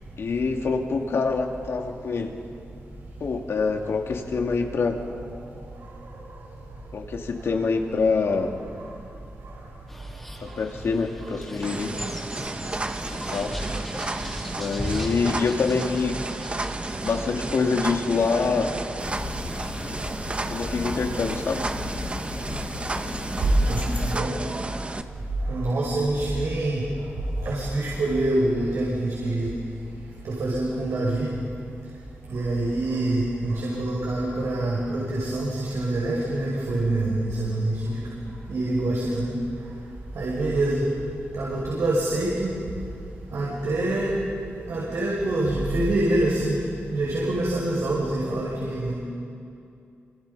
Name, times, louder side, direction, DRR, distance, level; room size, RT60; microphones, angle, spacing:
voice 1, 0.2-2.3 3.2-5.0 6.9-8.6 10.4-12.0 13.1-13.5 14.6-16.2 17.0-18.7 20.5-21.7, left 4 dB, 70° left, 2 dB, 2.6 m, -25 dB
sound 1, 9.9-19.9, equal, 5° left, 2.8 m, -38 dB
sound 2, 11.6-25.0, right 2 dB, 25° right, 1.0 m, -32 dB
sound 3, 19.0-24.2, left 3 dB, 35° left, 1.9 m, -36 dB
voice 2, 23.6-24.3 25.5-26.8 27.4-29.5 30.2-31.3 32.3-37.9 38.5-39.4 40.1-40.8 41.3-42.5 43.3-44.2 44.7-46.6 46.9-48.9, right 2 dB, 80° right, -5 dB, 5.9 m, -25 dB
29.0 x 26.5 x 5.6 m, 2.5 s
wide cardioid pair, 130°, 5 cm